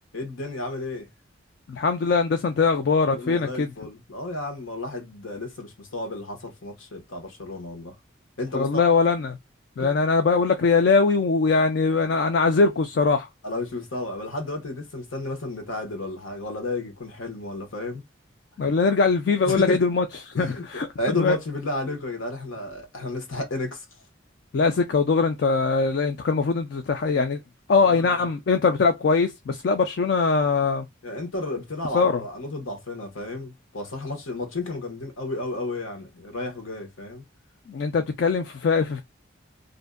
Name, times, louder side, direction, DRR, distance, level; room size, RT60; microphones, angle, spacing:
voice 1, 0.1-1.1 3.1-8.0 8.4-8.8 9.8-10.0 13.4-18.0 19.5-19.8 20.3-24.0 27.7-28.3 31.0-37.2, left 2 dB, 90° left, 1.0 m, -32 dB
voice 2, 1.7-3.7 8.5-9.4 9.8-13.3 18.6-20.0 20.4-20.9 21.2-21.4 24.5-27.4 27.7-30.9 31.9-32.2 37.7-39.0, left 4 dB, 55° left, 0.3 m, -21 dB
2.6 x 2.1 x 2.2 m
head